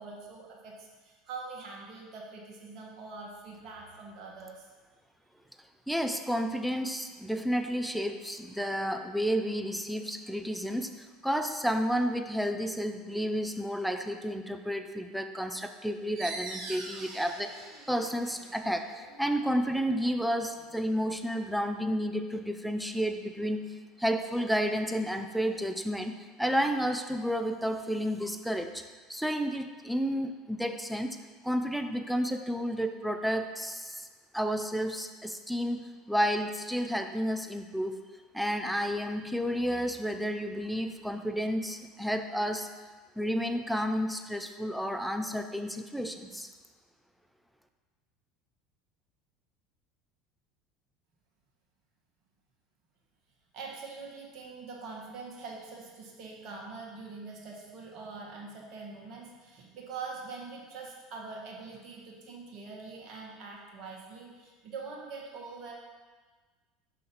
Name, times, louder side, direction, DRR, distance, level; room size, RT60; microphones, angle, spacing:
voice 1, 0.0-4.7 53.5-65.7, right 4 dB, 45° right, -2 dB, 1.5 m, -44 dB
voice 2, 5.9-23.7 24.0-28.8 29.1-31.2 31.4-34.1 34.3-38.0 38.3-42.7 43.2-46.5, equal, ahead, 7 dB, 0.6 m, -31 dB
sound 1, 16.1-21.4, right 3 dB, 30° right, 1.7 m, -45 dB
5.7 x 5.5 x 5.4 m, 1.4 s
figure-of-eight pair, 70°, 0 cm